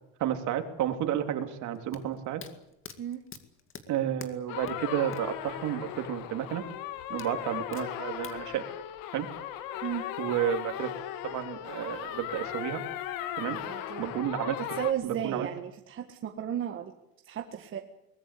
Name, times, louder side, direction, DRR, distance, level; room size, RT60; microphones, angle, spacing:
voice 1, 0.2-2.4 3.9-6.6 7.1-8.6 9.1-9.3 10.2-10.9 11.2-12.8 13.4-13.6 14.0-14.6 15.0-15.5, right 10 dB, 60° right, 6 dB, 3.0 m, -31 dB
sound 1, 1.7-5.4 5.7-5.8 7.2-8.4, left 7 dB, 40° left, 2.3 m, -46 dB
sound 2, 4.5-14.9, left 12 dB, 80° left, 2.2 m, -37 dB
voice 2, 13.5-14.1 14.7-16.9 17.2-17.8, right 9 dB, 35° right, 4 dB, 1.7 m, -34 dB
23.0 x 19.5 x 8.4 m, 0.85 s
cardioid pair, 150°, 33 cm